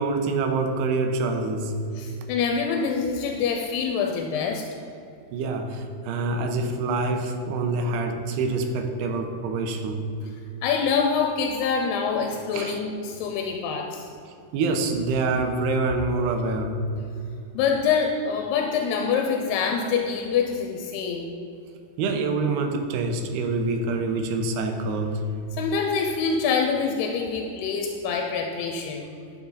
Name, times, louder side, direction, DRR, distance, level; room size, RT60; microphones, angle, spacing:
voice 1, 0.0-1.7 5.3-10.0 12.5-12.8 14.5-16.8 22.0-25.2, right 3 dB, 85° right, 5 dB, 2.9 m, -26 dB
voice 2, 2.0-4.6 10.6-14.1 17.5-21.3 25.5-29.1, left 6 dB, 85° left, 2 dB, 2.7 m, -25 dB
11.5 x 6.7 x 3.9 m, 2.5 s
omnidirectional pair, 4.6 m